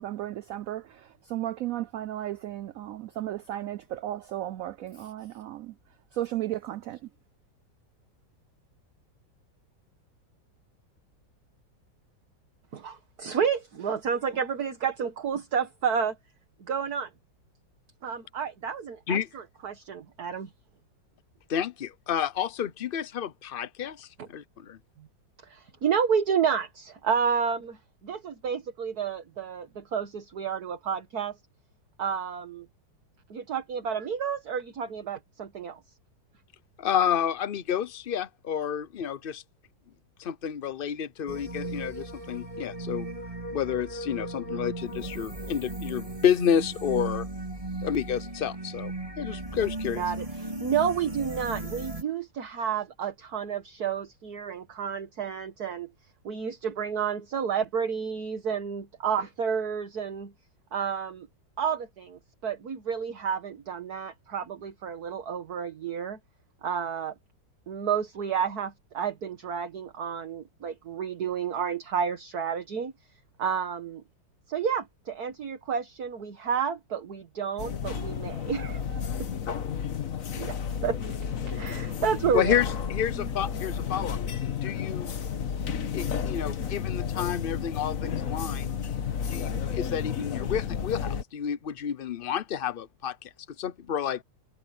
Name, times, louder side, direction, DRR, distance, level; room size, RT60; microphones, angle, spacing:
voice 1, 0.0-5.7 6.1-7.0, right 13 dB, 85° right, 0.7 m, -34 dB
voice 2, 12.7-16.2 16.6-17.1 18.0-20.5 24.2-24.3 25.4-27.8 28.0-31.4 32.0-32.7 33.3-35.8 50.0-55.9 56.2-60.3 60.7-61.3 61.6-66.2 66.6-67.1 67.7-72.9 73.4-74.0 74.5-79.3 80.4-80.6 80.8-81.1 81.4-82.5, right 7 dB, 55° right, 1.9 m, -30 dB
voice 3, 21.5-24.8 36.8-39.4 40.2-43.1 43.5-47.3 47.8-50.0 82.3-84.2 84.6-85.1 85.9-88.7 89.3-93.3 93.6-94.2, left 8 dB, 70° left, 0.5 m, -30 dB
sound 1, 41.3-52.0, right 2 dB, 20° right, 3.4 m, -36 dB
sound 2, 77.6-91.2, left 7 dB, 50° left, 1.4 m, -32 dB
omnidirectional pair, 2.0 m